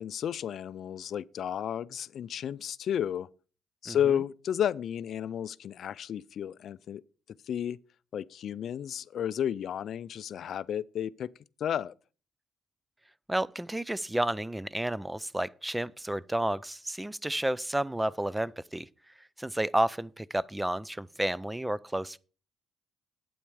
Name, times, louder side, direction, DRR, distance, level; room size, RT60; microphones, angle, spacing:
voice 1, 0.0-3.3 3.8-7.0 7.5-7.8 8.1-11.3 11.6-11.9, left 9 dB, 65° left, 0.4 m, -32 dB
voice 2, 3.9-4.2 13.3-18.9 19.4-22.2, right 1 dB, 10° right, 0.4 m, -31 dB
8.7 x 8.7 x 4.7 m
cardioid pair, 90°, 0 cm